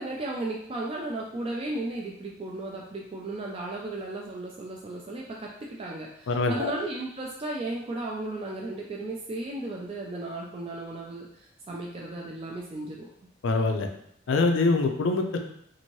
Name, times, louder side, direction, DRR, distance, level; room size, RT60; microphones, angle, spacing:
voice 1, 0.0-11.3 11.7-13.1, right 2 dB, 30° right, -2 dB, 0.3 m, -35 dB
voice 2, 6.3-6.7 13.4-13.9 14.3-15.4, left 3 dB, 70° left, 4 dB, 0.4 m, -24 dB
2.7 x 2.6 x 3.0 m, 0.70 s
head